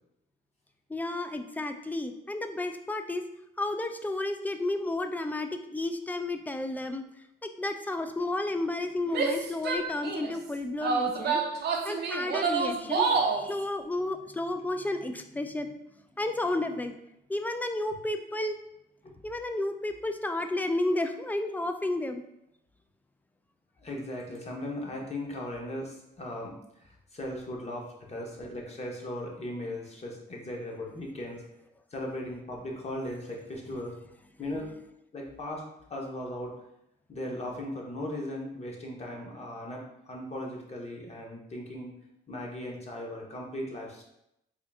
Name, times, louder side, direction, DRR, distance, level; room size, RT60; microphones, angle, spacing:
voice 1, 0.9-3.2 3.6-7.1 7.4-11.4 11.8-15.7 16.2-16.9 17.3-18.6 19.2-22.2, left 2 dB, 10° left, 7 dB, 0.3 m, -32 dB
Female speech woman speaking / Yell, 9.1-10.3 10.8-13.4, right 4 dB, 55° right, 0.6 m, -28 dB
voice 2, 23.8-31.4 31.9-33.9 34.4-34.7 35.1-35.6 35.9-36.5 37.1-41.9 42.3-44.0, left 1 dB, 35° left, -1 dB, 1.0 m, -38 dB
3.7 x 2.4 x 3.4 m, 0.82 s
cardioid pair, 90°, 20 cm